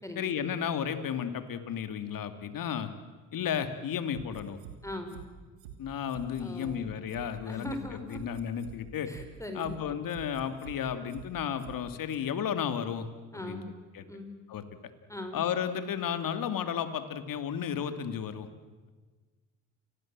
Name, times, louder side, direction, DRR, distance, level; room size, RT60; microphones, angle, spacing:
voice 1, 0.2-2.9 3.3-4.6 5.8-9.1 9.5-13.1 13.3-13.6 13.9-14.0 14.5-14.6 15.3-18.5, left 8 dB, 55° left, 10 dB, 2.7 m, -33 dB
sound 1, 4.2-4.8 5.1-5.2 5.6-5.7 6.1-6.7 7.1-7.2 7.6-7.8 8.1-8.8 9.1-9.2 9.6-9.7 10.1-10.8 11.1-11.2 11.6-11.8 12.1-12.2, right 11 dB, 90° right, 2.8 m, -46 dB
voice 2, 4.8-5.2 6.4-6.9 7.5-8.2 9.1-9.8 13.3-13.7 14.1-14.4 15.1-15.4, left 1 dB, 10° left, 6 dB, 4.6 m, -40 dB
29.0 x 19.5 x 7.6 m, 1.3 s
hypercardioid pair, 65°, 39 cm